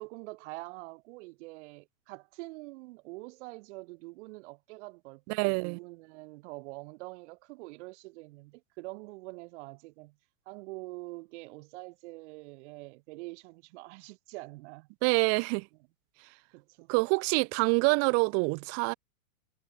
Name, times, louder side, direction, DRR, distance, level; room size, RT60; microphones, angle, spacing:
voice 1, 0.0-10.2 10.5-14.9 16.5-16.9, right 24 dB, 50° right, 3.9 m, -45 dB
voice 2, 5.3-5.8 15.0-15.7 16.9-18.9, right 40 dB or more, 35° right, 0.7 m, -26 dB
hypercardioid pair, 125°, 43 cm